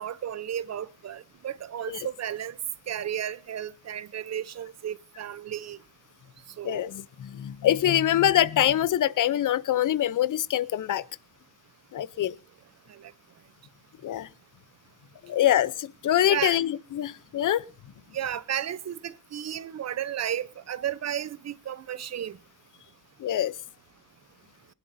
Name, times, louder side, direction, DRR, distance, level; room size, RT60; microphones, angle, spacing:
voice 1, 0.0-2.6 2.9-5.8 6.6-6.9 12.9-13.1 16.3-16.6 18.1-22.4, right 10 dB, 50° right, 0.6 m, -33 dB
voice 2, 6.6-11.0 11.9-12.4 14.0-14.3 15.2-17.6 23.2-23.5, left 11 dB, 65° left, 0.6 m, -24 dB
23.5 x 11.0 x 2.6 m
wide cardioid pair, 175°, 33 cm